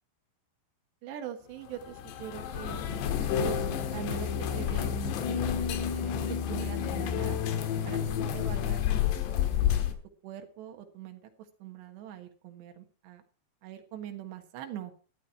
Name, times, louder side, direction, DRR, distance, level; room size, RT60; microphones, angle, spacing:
voice 1, 1.0-3.6 3.9-7.4 7.9-9.6 10.2-11.2 11.6-13.2 13.6-14.9, right 10 dB, 85° right, 6 dB, 3.7 m, -43 dB
sound 1, 1.7-9.9, left 9 dB, 85° left, 3.5 m, -30 dB
12.5 x 12.5 x 4.5 m, 0.39 s
omnidirectional pair, 4.8 m